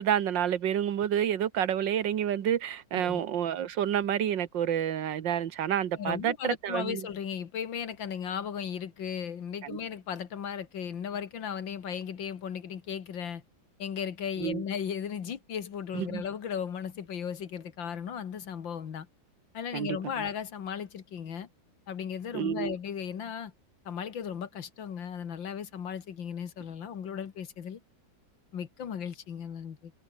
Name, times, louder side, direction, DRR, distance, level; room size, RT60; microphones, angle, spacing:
voice 1, 0.0-7.1 9.6-9.8 14.4-14.6 15.9-16.2 19.7-20.0 22.3-22.7, right 10 dB, 75° right, 1.9 m, -29 dB
voice 2, 6.0-13.4 13.8-19.1 19.5-21.5 21.9-23.5 23.9-27.8 28.5-29.9, left 8 dB, 85° left, 2.4 m, -36 dB
omnidirectional pair, 2.0 m